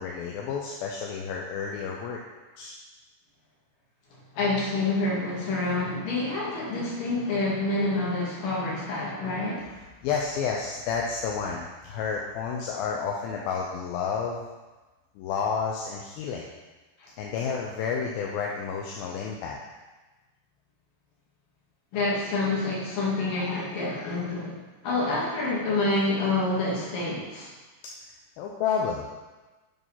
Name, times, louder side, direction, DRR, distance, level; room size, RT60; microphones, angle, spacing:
voice 1, 0.0-2.2 2.6-2.8 10.0-14.5 15.2-16.5 17.2-19.6 23.3-24.3 28.4-29.1, left 6 dB, 80° left, -1 dB, 2.5 m, -31 dB
voice 2, 4.4-9.6 17.0-17.1 21.9-27.5, left 2 dB, 65° left, -4 dB, 3.5 m, -27 dB
8.0 x 5.3 x 5.6 m, 1.2 s
omnidirectional pair, 4.3 m